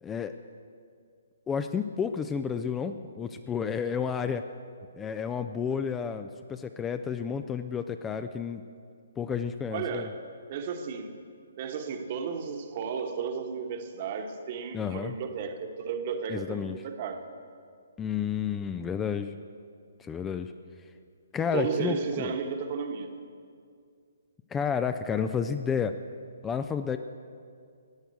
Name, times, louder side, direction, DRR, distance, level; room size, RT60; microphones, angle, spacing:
voice 1, 0.0-0.3 1.5-4.4 4.9-8.6 9.2-10.1 14.7-15.1 16.3-16.8 18.0-19.3 20.0-20.5 21.3-22.4 24.5-26.0 26.4-27.0, left 7 dB, 10° left, 9 dB, 0.4 m, -31 dB
voice 2, 9.7-11.1 11.6-17.3 21.4-23.1, right 6 dB, 40° right, 6 dB, 1.3 m, -34 dB
14.5 x 9.1 x 8.1 m, 2.2 s
figure-of-eight pair, 130°, 0 cm